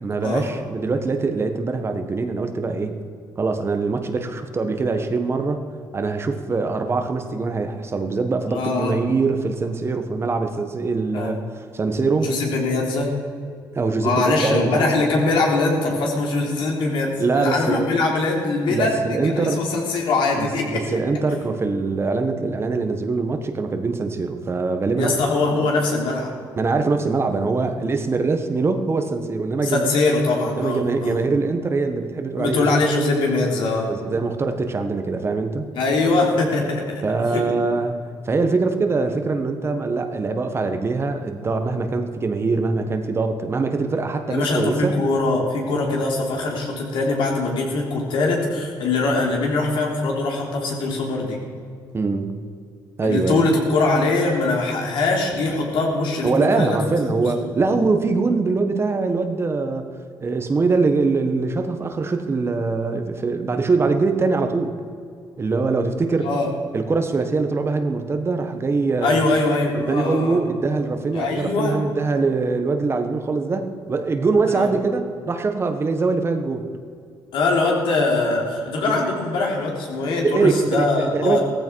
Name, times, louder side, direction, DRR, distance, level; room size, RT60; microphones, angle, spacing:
voice 1, 0.0-3.0 3.4-5.6 5.9-11.4 11.7-12.3 13.7-14.9 17.2-17.9 18.7-19.6 20.4-25.1 26.6-30.0 30.6-32.8 33.9-35.7 37.0-38.0 38.2-45.0 51.9-52.4 53.0-53.4 56.2-59.9 60.2-64.8 65.4-66.3 66.7-69.2 69.7-76.7 78.8-79.0 80.2-81.4, right 4 dB, 30° right, 7 dB, 1.3 m, -23 dB
voice 2, 8.5-9.0 11.1-11.3 12.2-13.1 14.0-21.0 25.0-26.3 29.6-31.3 32.4-33.9 35.7-37.0 37.3-37.4 44.3-51.4 53.0-56.8 57.0-57.5 66.2-66.5 69.0-70.4 71.1-71.8 74.5-74.7 77.3-81.4, left 3 dB, 75° left, -1 dB, 3.6 m, -22 dB
16.0 x 14.5 x 4.7 m, 2.3 s
cardioid pair, 115°, 8 cm